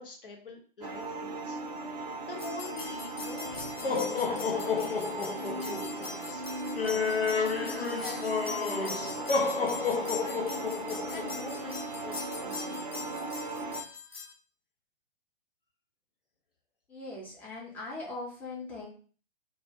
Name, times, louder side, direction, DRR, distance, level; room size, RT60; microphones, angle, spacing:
voice 1, 0.0-1.6 2.2-6.4 6.9-9.3 9.9-11.8 12.0-12.9, left 3 dB, 70° left, 2 dB, 0.8 m, -45 dB
sound 1, 0.8-13.8, right 2 dB, 45° right, 0.5 m, -38 dB
sound 2, 2.4-14.3, left 5 dB, 90° left, 0.5 m, -32 dB
voice 2, 16.9-18.9, left 2 dB, 5° left, -4 dB, 0.4 m, -40 dB
2.2 x 2.1 x 3.2 m, 0.40 s
figure-of-eight pair, 110°, 29 cm